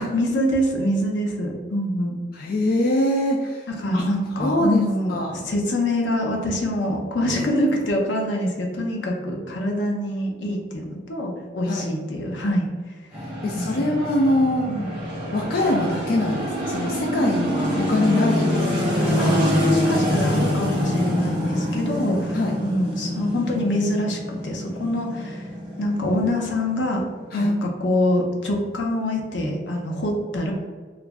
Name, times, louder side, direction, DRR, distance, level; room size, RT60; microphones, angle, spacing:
voice 1, 0.0-2.2 3.7-13.0 13.5-13.9 14.7-14.9 18.9-25.5 25.8-27.0 27.3-30.5, left 1 dB, 80° left, 1 dB, 0.7 m, -25 dB
voice 2, 2.3-5.4 11.6-11.9 13.1-14.7 15.3-19.0 22.3-22.5 27.3-27.5, left 1 dB, 50° left, 0 dB, 0.3 m, -24 dB
sound 1, 13.1-27.4, left 1 dB, 5° right, 1.3 m, -25 dB
3.0 x 2.5 x 3.4 m, 1.5 s
head